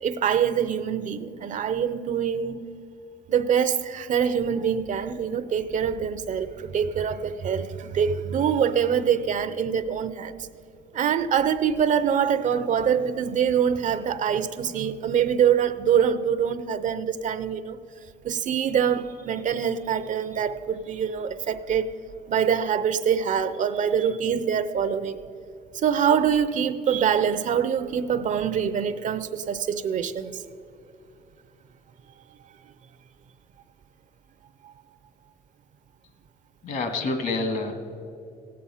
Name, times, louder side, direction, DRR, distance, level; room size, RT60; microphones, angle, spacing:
voice 1, 0.0-2.7 3.3-10.5 10.9-17.8 18.2-21.9 22.3-25.2 25.7-30.4 34.6-34.7, right 8 dB, 50° right, 0.6 m, -24 dB
voice 2, 36.6-37.7, left 3 dB, 55° left, 1.7 m, -27 dB
16.5 x 8.6 x 5.6 m
cardioid pair, 110°, 17 cm